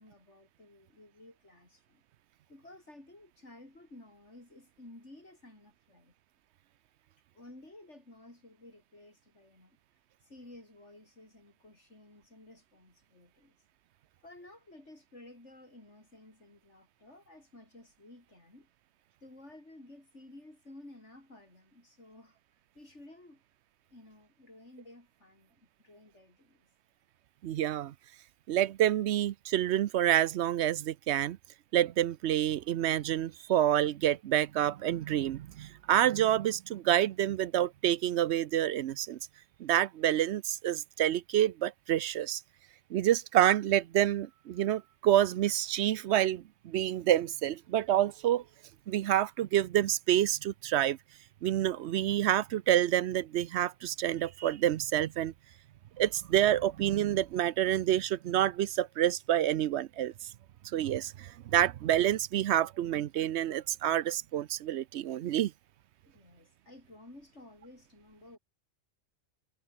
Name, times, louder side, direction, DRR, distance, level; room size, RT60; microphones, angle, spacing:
voice 1, 0.0-2.0 2.5-6.1 7.3-9.8 10.2-13.6 14.2-18.7 19.2-22.4 22.7-23.4 23.9-26.7 66.1-68.4, left 1 dB, 90° left, 6.9 m, -54 dB
voice 2, 27.4-27.9 28.5-31.4 31.7-39.2 39.6-42.4 42.9-48.4 48.9-51.0 51.4-55.3 56.0-60.1 60.7-65.5, right 12 dB, 75° right, 0.9 m, -28 dB
omnidirectional pair, 1.2 m